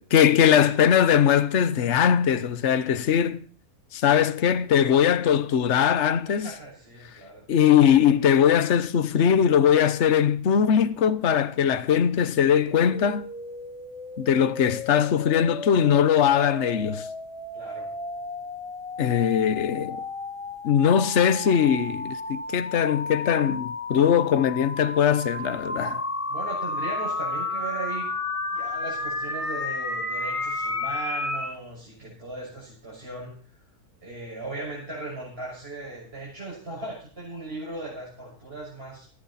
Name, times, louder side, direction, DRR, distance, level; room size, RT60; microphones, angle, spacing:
voice 1, 0.0-3.4 3.9-6.5 7.5-13.3 14.2-17.1 19.0-20.0 20.6-26.0, left 8 dB, 50° left, 1.2 m, -21 dB
voice 2, 6.3-7.4 17.5-17.9 26.3-28.1 28.5-33.3 34.0-39.1, right 2 dB, 40° right, 6.8 m, -37 dB
sound 1, 12.7-31.5, left 2 dB, 20° left, 1.5 m, -33 dB
18.0 x 15.5 x 4.2 m
omnidirectional pair, 1.6 m